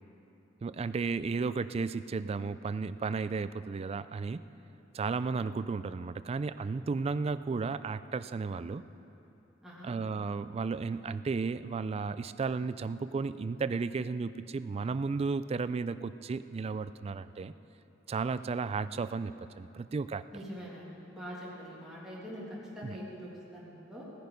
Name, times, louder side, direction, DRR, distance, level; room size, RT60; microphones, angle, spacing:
voice 1, 0.6-4.4 4.9-8.8 9.8-17.5 18.1-20.2 22.8-23.0, right 4 dB, 30° right, 13 dB, 0.3 m, -34 dB
voice 2, 9.6-9.9 20.3-24.1, equal, 5° right, -7 dB, 2.3 m, -44 dB
16.5 x 10.0 x 5.2 m, 2.9 s
head